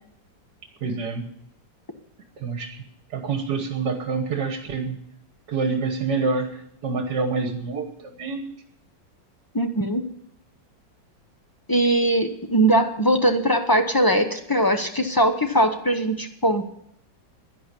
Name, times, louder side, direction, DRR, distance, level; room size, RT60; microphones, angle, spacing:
voice 1, 0.8-1.2 2.4-2.8 3.1-5.0 5.5-8.5, right 4 dB, 60° right, 6 dB, 1.8 m, -27 dB
voice 2, 9.5-10.0 11.7-16.7, right 1 dB, 20° left, 6 dB, 0.6 m, -21 dB
11.0 x 10.5 x 8.3 m, 0.73 s
omnidirectional pair, 2.0 m